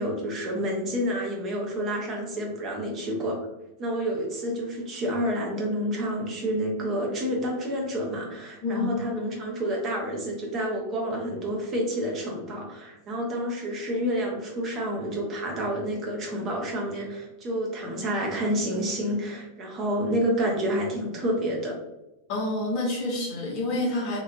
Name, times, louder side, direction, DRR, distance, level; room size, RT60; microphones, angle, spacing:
voice 1, 0.0-3.4 3.8-21.8, equal, 30° right, 0 dB, 0.7 m, -29 dB
voice 2, 8.6-8.9 22.3-24.2, left 2 dB, 45° left, -2 dB, 1.0 m, -28 dB
2.9 x 2.4 x 2.6 m, 0.96 s
figure-of-eight pair, 90°, 0 cm